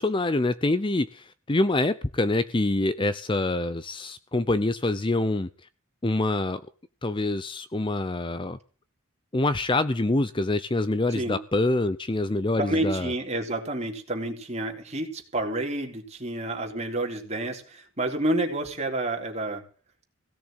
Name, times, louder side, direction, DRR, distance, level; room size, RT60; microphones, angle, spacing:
voice 1, 0.0-5.5 6.0-6.6 7.0-8.6 9.3-13.1, left 2 dB, 25° left, 14 dB, 0.6 m, -25 dB
voice 2, 12.6-19.6, right 1 dB, 30° right, 2 dB, 3.5 m, -29 dB
17.0 x 6.7 x 9.0 m, 0.39 s
head